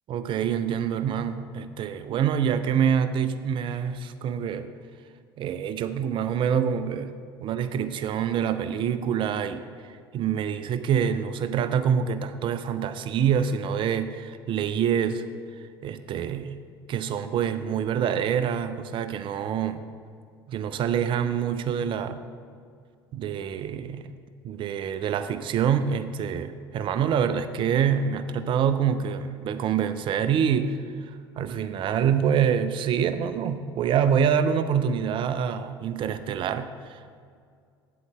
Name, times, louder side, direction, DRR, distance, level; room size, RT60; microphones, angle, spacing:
voice 1, 0.1-4.7 5.4-7.1 7.4-9.6 10.1-15.2 15.8-16.6 16.9-19.8 20.5-22.2 23.1-24.2 24.4-30.8 31.4-37.0, right 8 dB, 40° right, 11 dB, 0.5 m, -26 dB
8.5 x 7.8 x 3.5 m, 2.2 s
figure-of-eight pair, 65°, 13 cm